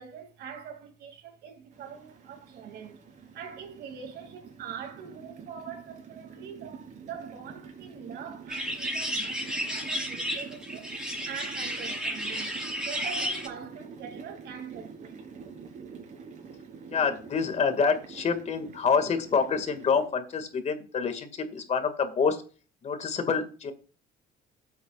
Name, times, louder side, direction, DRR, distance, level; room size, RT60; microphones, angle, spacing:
voice 1, 0.0-3.0 3.3-10.9 11.2-12.6 12.8-15.3, right 7 dB, 70° right, 2.7 m, -43 dB
sound 1, 1.7-20.1, right 5 dB, 50° right, 4.5 m, -46 dB
sound 2, 8.5-13.5, equal, 5° right, 4.9 m, -32 dB
voice 2, 16.9-22.4 22.8-23.7, left 5 dB, 40° left, 2.2 m, -27 dB
15.5 x 8.3 x 2.5 m
cardioid pair, 110°, 17 cm